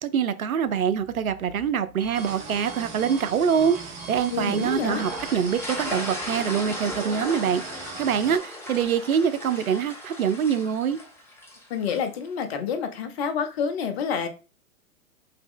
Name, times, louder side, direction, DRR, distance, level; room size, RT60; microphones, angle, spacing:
voice 1, 0.0-3.8 4.1-7.6 8.0-11.0, right 7 dB, 80° right, 0.5 m, -24 dB
Alarm, 0.6-7.0, right 1 dB, 25° left, 1.7 m, -47 dB
sound 1, 2.1-8.4, right 4 dB, 15° right, 0.5 m, -39 dB
voice 2, 4.3-5.0 11.7-14.3, left 6 dB, 45° left, 0.8 m, -28 dB
sound 2, 4.8-12.1, left 1 dB, 5° left, 0.8 m, -37 dB
3.7 x 2.9 x 3.7 m
figure-of-eight pair, 105°, 42 cm